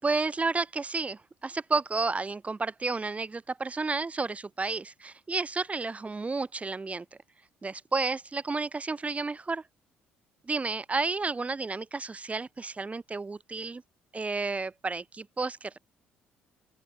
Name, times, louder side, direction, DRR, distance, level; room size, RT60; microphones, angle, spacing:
voice 1, 0.0-7.0 7.6-9.6 10.5-13.8 14.1-15.8, right 3 dB, 25° right, 6.5 m, -31 dB
open air
hypercardioid pair, 60°, 5 cm